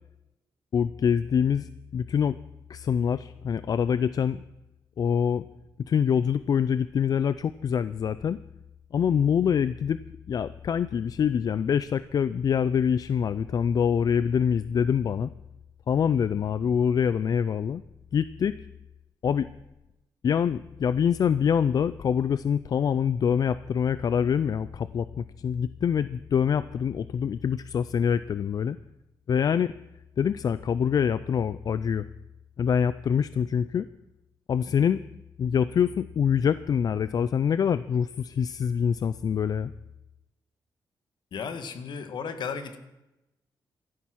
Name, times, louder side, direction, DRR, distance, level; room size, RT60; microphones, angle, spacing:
voice 1, 0.7-2.4 2.7-4.4 5.0-5.5 5.9-8.4 8.9-10.0 10.3-15.3 15.9-17.8 18.1-18.6 19.2-19.5 20.2-28.8 29.3-29.7 30.2-32.1 32.6-33.9 34.5-35.0 35.4-39.7, left 7 dB, 50° left, 16 dB, 0.4 m, -25 dB
voice 2, 41.3-42.8, left 6 dB, 70° left, 10 dB, 1.7 m, -34 dB
16.0 x 13.0 x 6.2 m, 0.94 s
wide cardioid pair, 130°, 8 cm